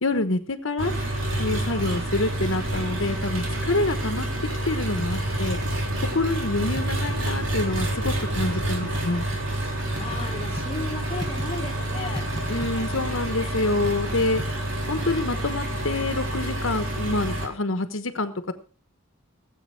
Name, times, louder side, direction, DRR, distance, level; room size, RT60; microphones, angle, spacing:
voice 1, 0.0-0.9 1.4-4.3 4.7-5.6 6.0-9.2 12.5-14.4 14.9-18.5, left 2 dB, 75° left, 1.2 m, -27 dB
Engine, 0.8-17.5, right 1 dB, 70° right, 3.3 m, -28 dB
sound 1, 2.8-3.2 3.5-4.5 4.8-5.3 5.6-9.4 9.7-11.8 12.2-13.0 13.3-16.2, equal, 20° right, 1.2 m, -39 dB
voice 2, 10.0-13.2, left 3 dB, 25° left, 1.6 m, -36 dB
18.0 x 8.2 x 4.7 m
head